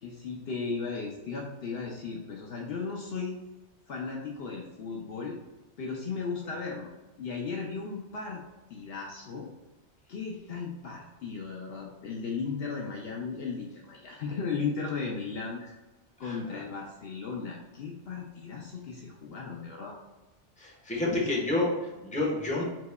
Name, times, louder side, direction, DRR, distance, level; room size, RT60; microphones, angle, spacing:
voice 1, 0.0-3.4 3.9-5.4 5.8-6.9 7.2-8.4 8.7-9.5 10.1-15.6 16.2-20.0 21.0-21.1, left 5 dB, 65° left, 0 dB, 0.8 m, -36 dB
voice 2, 16.2-16.6 20.6-22.6, left 2 dB, 5° left, -3 dB, 0.9 m, -30 dB
4.8 x 4.0 x 2.2 m, 1.1 s
omnidirectional pair, 1.2 m